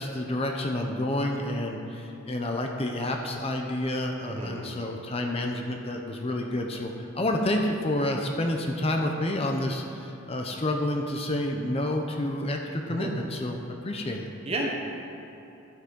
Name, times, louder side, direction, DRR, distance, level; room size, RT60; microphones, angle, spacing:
voice 1, 0.0-14.3, left 1 dB, 30° left, 2 dB, 0.7 m, -29 dB
voice 2, 4.3-4.7 12.9-13.1 14.5-14.7, right 2 dB, 30° right, -1 dB, 1.4 m, -31 dB
12.0 x 8.0 x 5.3 m, 3.0 s
head